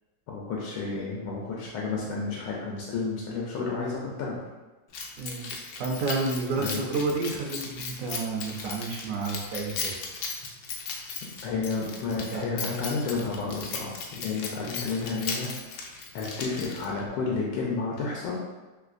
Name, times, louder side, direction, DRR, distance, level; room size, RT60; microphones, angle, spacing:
voice 1, 0.3-4.5 6.5-6.8 11.4-15.5 15.8-18.4, left 4 dB, 90° left, -3 dB, 1.3 m, -31 dB
Keys jangling, 4.9-17.1, left 4 dB, 70° left, 0.9 m, -37 dB
voice 2, 5.2-10.0 12.3-12.7, right 3 dB, 70° right, 0 dB, 0.8 m, -31 dB
3.3 x 3.0 x 2.5 m, 1.2 s
omnidirectional pair, 1.9 m